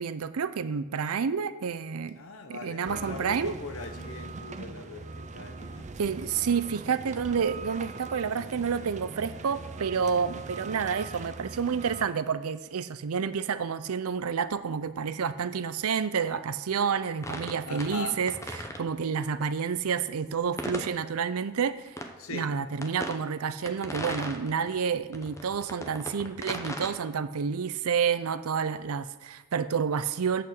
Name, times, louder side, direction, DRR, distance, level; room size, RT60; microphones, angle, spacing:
voice 1, 0.0-2.2 2.5-3.5 6.0-22.0 22.3-30.4, right 6 dB, 85° right, 14 dB, 0.5 m, -29 dB
voice 2, 2.1-5.9 17.7-18.2 22.2-22.5, left 3 dB, 70° left, 7 dB, 1.0 m, -40 dB
sound 1, 2.8-12.1, right 3 dB, 35° right, 0.4 m, -41 dB
sound 2, 17.2-18.0 18.3-18.8 20.6-20.9 22.0-22.1 22.8-23.2 23.7-24.8 25.1-26.9, left 1 dB, 15° left, 0.8 m, -36 dB
7.9 x 6.7 x 6.4 m, 1.1 s
head